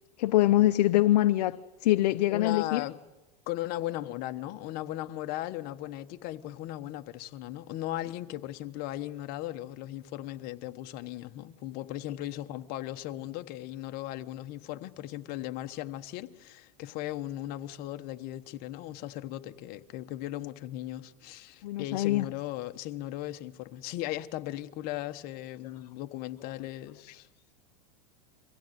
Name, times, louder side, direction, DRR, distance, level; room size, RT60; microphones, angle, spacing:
voice 1, 0.2-2.8 21.6-22.3, left 15 dB, 70° left, 0.7 m, -24 dB
voice 2, 2.3-3.0 3.5-27.3, left 14 dB, 45° left, 1.2 m, -37 dB
24.0 x 16.0 x 9.4 m
supercardioid pair, 130°, 21 cm